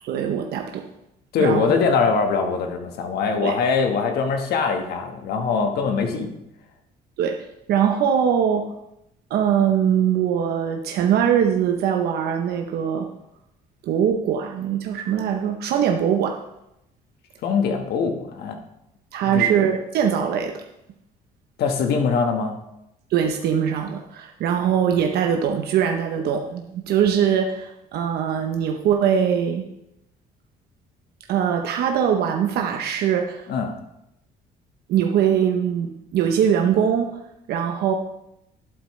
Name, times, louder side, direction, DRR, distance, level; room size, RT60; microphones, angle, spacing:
voice 1, 0.0-0.8 1.4-1.7 3.4-3.5 7.2-7.4 7.7-8.7 9.3-13.1 13.8-16.4 19.1-20.6 23.1-29.7 31.3-33.5 34.9-37.2 37.5-37.9, right 8 dB, 70° right, 4 dB, 0.8 m, -22 dB
voice 2, 1.3-6.3 17.4-18.6 19.2-19.5 21.6-22.6 33.5-33.7, left 5 dB, 70° left, 4 dB, 1.4 m, -22 dB
11.5 x 8.4 x 3.2 m, 0.85 s
cardioid pair, 110°, 17 cm